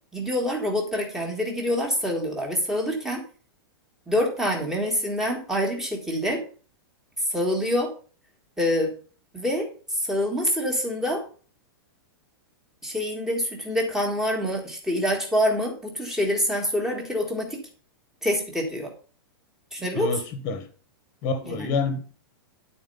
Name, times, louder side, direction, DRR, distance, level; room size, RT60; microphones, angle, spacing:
voice 1, 0.1-3.2 4.1-6.4 7.3-7.9 8.6-8.9 9.3-9.7 9.9-11.2 12.8-17.6 18.2-18.9 19.7-20.2 21.4-21.7, equal, 5° right, 1 dB, 1.6 m, -26 dB
voice 2, 19.9-20.6 21.2-22.2, left 4 dB, 30° left, 9 dB, 1.3 m, -28 dB
10.5 x 4.4 x 5.4 m, 0.39 s
supercardioid pair, 170°, 13 cm